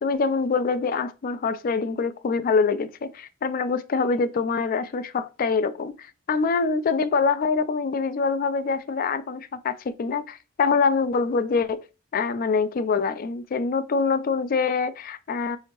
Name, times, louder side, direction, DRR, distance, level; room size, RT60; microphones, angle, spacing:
voice 1, 0.0-11.8 12.1-15.6, left 4 dB, 45° left, 0.3 m, -25 dB
4.3 x 2.8 x 2.9 m
head